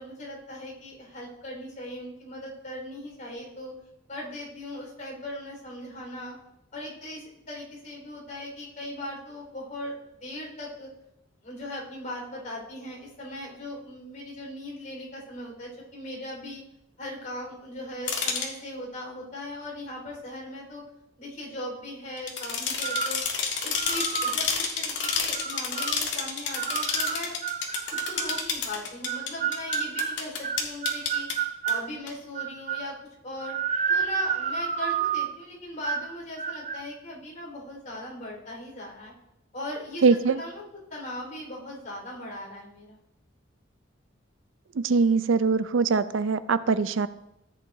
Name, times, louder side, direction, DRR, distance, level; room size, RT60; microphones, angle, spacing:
voice 1, 0.0-3.7 4.1-6.3 6.7-9.9 10.2-10.9 11.4-16.6 17.0-20.8 21.2-23.2 23.6-27.4 28.1-31.3 31.6-33.0 33.2-33.6 33.9-39.1 39.5-43.0, left 1 dB, 45° left, -2 dB, 4.4 m, -39 dB
sound 1, 18.1-18.5 22.2-31.3 31.7-31.8 32.1-32.2, left 5 dB, 75° left, 1.7 m, -29 dB
sound 2, 22.8-23.2 23.8-24.4 25.0-26.0 26.6-28.5 29.1-31.9 32.4-32.9 33.4-35.4 35.8-36.1 36.4-36.8, right 7 dB, 40° right, 0.5 m, -30 dB
voice 2, 40.0-40.4 44.8-47.1, right 4 dB, 85° right, 14 dB, 0.5 m, -22 dB
14.5 x 8.5 x 2.7 m, 0.83 s
head